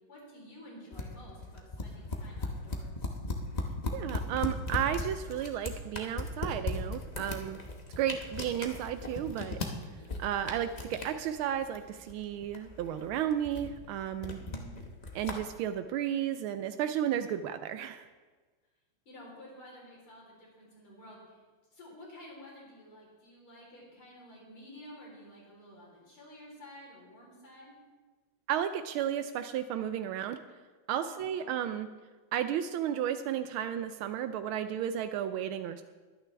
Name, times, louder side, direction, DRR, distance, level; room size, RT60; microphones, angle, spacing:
voice 1, 0.1-3.1 14.3-14.9 19.1-21.4 21.7-27.8 31.0-31.6, left 1 dB, 80° left, -3 dB, 4.8 m, -51 dB
sound 1, 0.9-15.3, left 2 dB, 30° left, 0.8 m, -38 dB
voice 2, 3.9-7.6 8.0-9.6 10.2-14.4 15.1-18.0 28.5-30.4 30.9-31.9 32.3-35.8, right 10 dB, 80° right, 10 dB, 1.4 m, -33 dB
22.5 x 9.1 x 3.4 m, 1.4 s
omnidirectional pair, 2.3 m